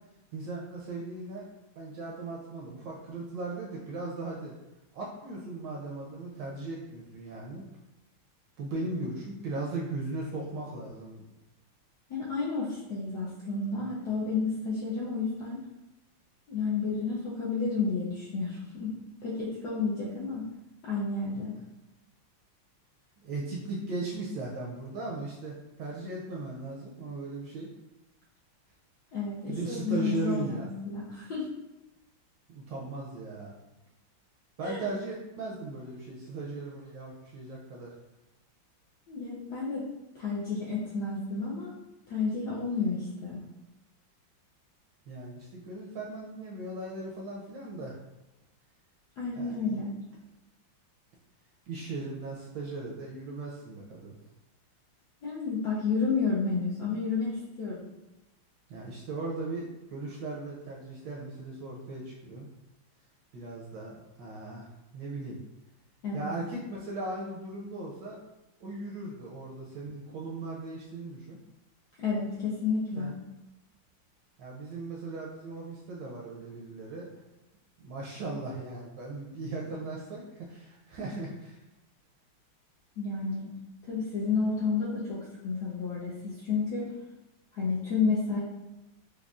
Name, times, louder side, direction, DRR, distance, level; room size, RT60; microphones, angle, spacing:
voice 1, 0.3-1.4 1.8-4.5 4.9-7.7 8.6-11.2 21.4-21.5 23.2-27.7 29.5-30.7 32.5-33.5 34.6-37.9 45.1-48.0 49.4-49.6 51.7-54.1 58.7-62.5 63.3-64.7 64.9-65.4 66.1-68.2 68.6-71.4 73.0-73.1 74.4-77.1 77.8-81.6, right 2 dB, 75° right, -3 dB, 1.1 m, -38 dB
voice 2, 12.1-15.6 16.5-20.5 20.8-21.6 29.1-31.5 34.6-34.8 39.1-39.9 40.1-41.7 42.1-43.4 49.2-49.9 55.2-57.9 66.0-66.3 72.0-73.1 83.0-83.5 83.9-86.9 87.5-88.4, left 4 dB, 70° left, -6 dB, 1.0 m, -31 dB
4.8 x 2.2 x 2.3 m, 0.98 s
omnidirectional pair, 2.3 m